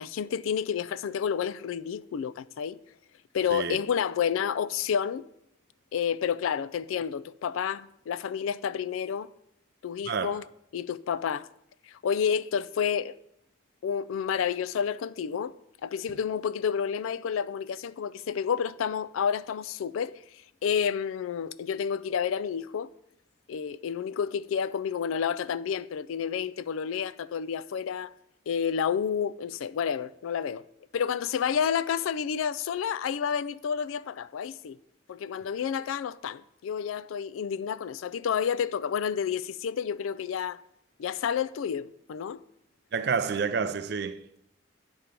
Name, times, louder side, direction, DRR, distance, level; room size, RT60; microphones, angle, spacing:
voice 1, 0.0-2.8 3.3-5.3 5.9-9.3 9.8-10.4 10.7-11.5 11.8-13.2 13.8-15.5 15.8-22.9 23.5-28.1 28.5-30.6 30.9-34.8 35.1-40.6 41.0-42.4, left 7 dB, 90° left, 0.3 m, -30 dB
voice 2, 42.9-44.4, right 5 dB, 55° right, 0.4 m, -29 dB
9.6 x 4.4 x 5.2 m
head